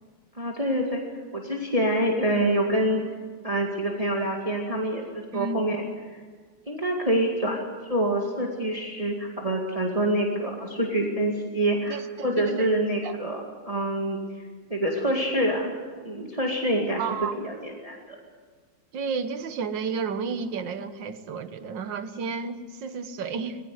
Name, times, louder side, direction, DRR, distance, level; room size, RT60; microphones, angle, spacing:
voice 1, 0.3-1.0 1.3-3.0 3.4-5.8 6.7-7.6 7.9-13.4 13.7-14.2 14.7-15.7 16.0-17.0 17.4-18.2, right 1 dB, 20° right, 0 dB, 2.2 m, -26 dB
voice 2, 5.3-5.6 11.9-12.0 12.4-12.7 13.0-13.1 17.0-17.3 18.9-23.6, right 5 dB, 90° right, 10 dB, 1.9 m, -31 dB
22.0 x 16.5 x 9.5 m, 1.5 s
omnidirectional pair, 1.9 m